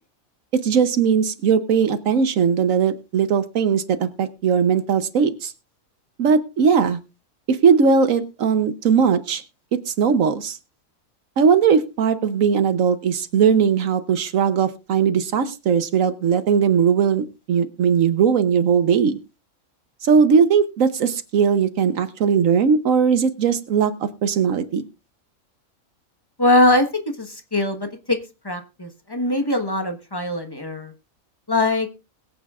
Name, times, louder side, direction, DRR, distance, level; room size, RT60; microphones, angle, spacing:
voice 1, 0.5-5.5 6.2-7.0 7.5-9.4 9.9-10.6 11.4-19.2 20.0-24.8, right 6 dB, 70° right, 11 dB, 1.2 m, -19 dB
voice 2, 26.4-26.9 27.2-28.2 28.4-30.9 31.5-31.9, left 2 dB, 20° left, 6 dB, 1.2 m, -21 dB
21.5 x 8.4 x 2.4 m, 0.29 s
omnidirectional pair, 1.5 m